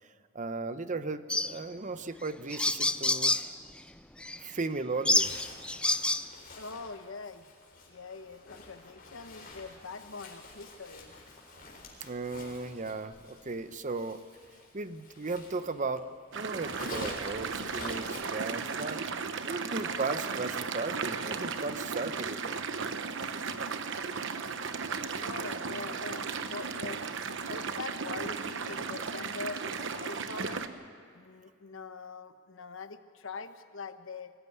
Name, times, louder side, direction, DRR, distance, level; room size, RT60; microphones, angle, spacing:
voice 1, 0.3-3.4 4.4-5.3 11.5-11.7 12.0-14.2 14.7-16.1 16.3-19.0 19.4-22.6, right 3 dB, 40° right, 12 dB, 0.8 m, -36 dB
sound 1, 1.3-1.5 2.2-2.3 2.5-3.5 4.2-4.4 5.0-6.2, left 2 dB, 5° left, 0.5 m, -27 dB
Zipper (clothing), 5.1-16.0 16.3-19.3, left 2 dB, 45° left, 4.2 m, -48 dB
voice 2, 6.6-7.5 7.9-11.2 25.1-27.1 27.4-30.6 31.1-34.3, left 4 dB, 70° left, 10 dB, 1.1 m, -43 dB
sound 2, 16.3-30.7, right 5 dB, 65° right, 1.1 m, -35 dB
21.0 x 15.0 x 9.6 m, 2.1 s
head